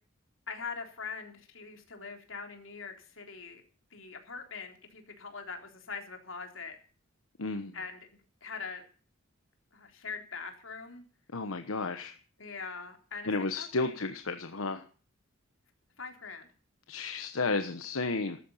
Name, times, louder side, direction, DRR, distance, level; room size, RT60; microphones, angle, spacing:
voice 1, 0.5-3.6 3.9-6.8 7.7-8.8 9.7-11.0 12.4-14.0 16.0-16.5, left 5 dB, 65° left, 4 dB, 3.7 m, -42 dB
voice 2, 7.4-7.7 11.3-12.1 13.3-14.8 16.9-18.4, left 3 dB, 85° left, 8 dB, 1.2 m, -32 dB
14.0 x 12.5 x 5.7 m, 0.41 s
head